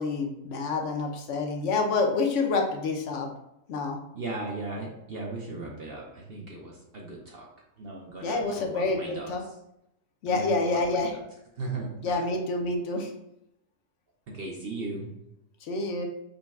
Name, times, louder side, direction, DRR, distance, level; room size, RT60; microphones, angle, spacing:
voice 1, 0.0-3.3 3.7-4.0 8.2-9.4 10.2-11.1 12.0-13.1 15.6-16.0, left 3 dB, 65° left, 2 dB, 1.0 m, -27 dB
voice 2, 4.1-7.5 7.8-9.3 10.3-11.2 11.6-12.2 14.3-15.1, right 2 dB, 55° right, -1 dB, 0.8 m, -37 dB
5.2 x 2.2 x 3.5 m, 0.83 s
omnidirectional pair, 1.4 m